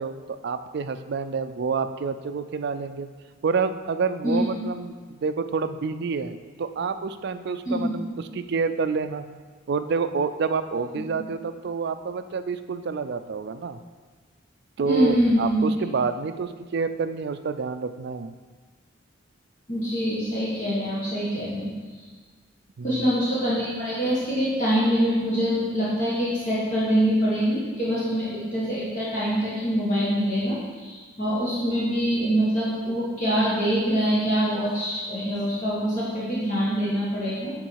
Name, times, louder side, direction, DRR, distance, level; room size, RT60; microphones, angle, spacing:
voice 1, 0.0-3.1 3.4-8.1 8.3-9.3 9.7-13.8 14.8-18.3 22.8-23.1, right 5 dB, 60° right, 10 dB, 0.4 m, -28 dB
voice 2, 14.9-15.7 19.7-21.7 22.8-37.5, equal, 40° left, -9 dB, 1.6 m, -24 dB
10.5 x 3.8 x 4.7 m, 1.4 s
head